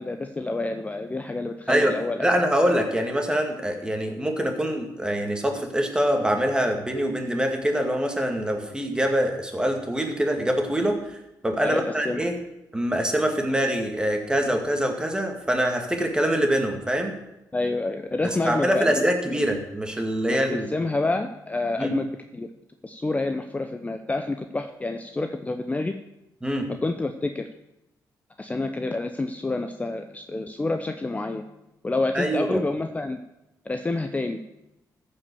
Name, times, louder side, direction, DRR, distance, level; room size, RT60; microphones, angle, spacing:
voice 1, 0.0-2.3 11.6-12.2 17.5-19.4 20.3-22.1 22.3-22.5 22.8-25.9 26.8-27.4 28.4-31.4 31.8-33.2 33.6-34.4, left 2 dB, 20° left, 6 dB, 0.7 m, -28 dB
voice 2, 2.2-11.0 11.4-12.3 12.7-17.1 18.2-20.7 21.8-21.9 26.4-26.7 32.1-32.6, equal, 10° right, 3 dB, 2.2 m, -24 dB
14.5 x 5.5 x 7.0 m, 0.92 s
cardioid pair, 80°, 7 cm